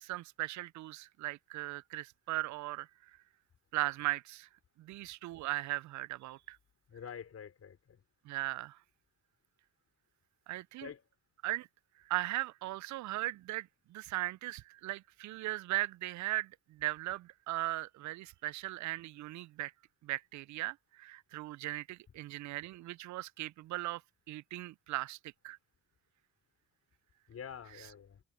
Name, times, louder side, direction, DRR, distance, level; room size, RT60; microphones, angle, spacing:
voice 1, 0.0-2.9 3.7-4.5 4.8-6.6 8.2-8.8 10.5-10.9 11.4-11.7 12.1-19.7 20.0-24.0 24.3-25.6, right 17 dB, 70° right, 0.4 m, -38 dB
voice 2, 6.9-8.0 10.8-11.0 27.3-28.2, left 7 dB, 55° left, 4.9 m, -47 dB
cardioid pair, 90°, 30 cm